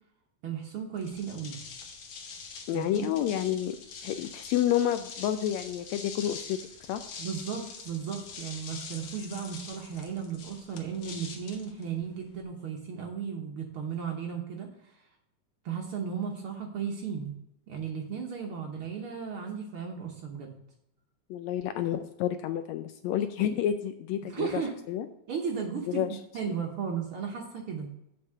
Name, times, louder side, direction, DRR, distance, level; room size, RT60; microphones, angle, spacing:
voice 1, 0.4-1.6 2.7-3.1 7.2-14.7 14.9-15.0 15.6-17.3 17.7-20.6 24.2-24.7 25.3-26.0 26.3-27.9, right 7 dB, 60° right, 1 dB, 1.6 m, -35 dB
sound 1, 1.0-12.4, left 5 dB, 60° left, 2.0 m, -44 dB
voice 2, 2.7-3.8 4.0-6.6 6.9-7.1 21.3-24.6 24.9-25.1 25.9-26.2, left 11 dB, 80° left, 9 dB, 1.6 m, -29 dB
7.3 x 5.3 x 6.7 m, 0.83 s
omnidirectional pair, 3.5 m